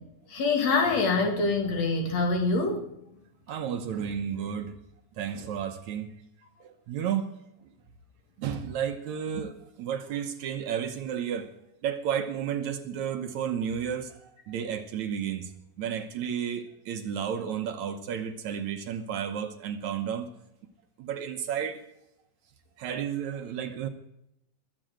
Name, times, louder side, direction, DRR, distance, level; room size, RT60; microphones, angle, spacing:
voice 1, 0.3-2.9, left 3 dB, 55° left, 3 dB, 3.5 m, -25 dB
voice 2, 3.5-4.7 5.2-6.1 6.9-7.3 8.4-11.5 11.8-14.2 14.5-15.5 15.8-20.3 21.0-21.8 22.8-23.9, right 8 dB, 70° right, 7 dB, 2.2 m, -32 dB
21.5 x 7.7 x 7.8 m, 0.83 s
omnidirectional pair, 3.8 m